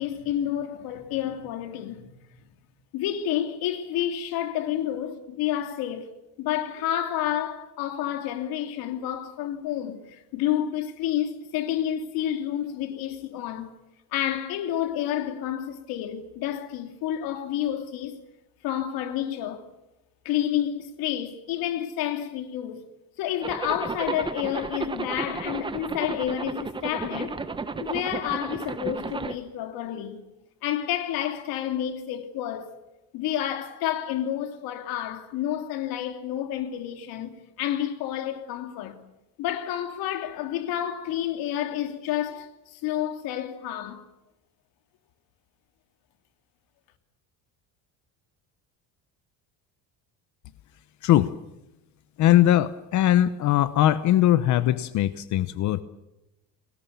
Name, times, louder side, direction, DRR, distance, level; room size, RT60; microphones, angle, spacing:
voice 1, 0.0-2.1 2.9-13.7 14.1-18.1 18.6-19.7 20.2-22.8 23.2-27.4 27.8-30.2 30.6-32.7 33.1-39.0 39.4-44.0, left 11 dB, 70° left, 3.0 m, -29 dB
Zipper (clothing), 23.4-29.4, right 4 dB, 15° right, 1.1 m, -33 dB
voice 2, 51.0-51.3 52.2-55.8, left 13 dB, 50° left, 0.9 m, -20 dB
30.0 x 20.5 x 7.0 m
cardioid pair, 160°, 37 cm